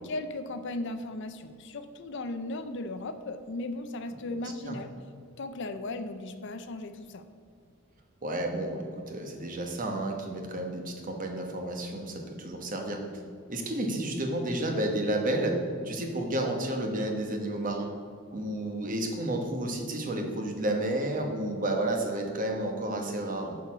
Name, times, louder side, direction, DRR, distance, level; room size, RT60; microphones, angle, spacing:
voice 1, 0.0-4.9 5.4-7.3, left 2 dB, 55° left, 9 dB, 0.5 m, -36 dB
voice 2, 8.2-13.0 13.5-18.0 18.3-23.6, right 1 dB, 40° right, 3 dB, 1.1 m, -31 dB
6.6 x 6.4 x 5.9 m, 2.2 s
head